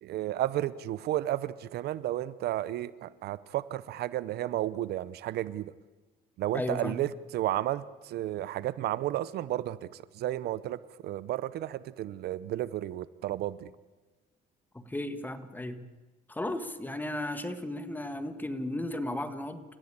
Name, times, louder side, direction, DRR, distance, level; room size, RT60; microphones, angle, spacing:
voice 1, 0.0-5.7 6.4-13.7, right 13 dB, 70° right, 17 dB, 0.8 m, -32 dB
voice 2, 6.5-7.0 14.7-15.8 16.3-19.6, left 1 dB, 10° left, 10 dB, 1.7 m, -35 dB
29.0 x 15.0 x 8.7 m, 1.2 s
cardioid pair, 110°, 17 cm